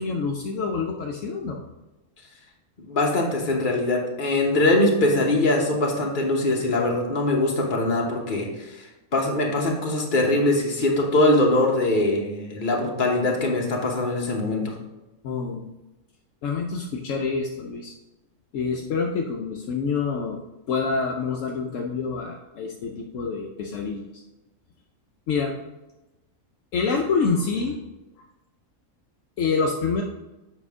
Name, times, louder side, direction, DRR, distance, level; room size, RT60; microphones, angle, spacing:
voice 1, 0.0-1.6 15.2-15.7 16.4-17.9 18.5-20.4 20.7-24.1 25.3-25.5 26.7-27.8 29.4-30.0, left 5 dB, 70° left, 1 dB, 1.0 m, -27 dB
voice 2, 2.8-8.9 9.1-14.7, left 2 dB, 40° left, -1 dB, 1.2 m, -22 dB
7.4 x 5.0 x 3.6 m, 1.0 s
omnidirectional pair, 1.4 m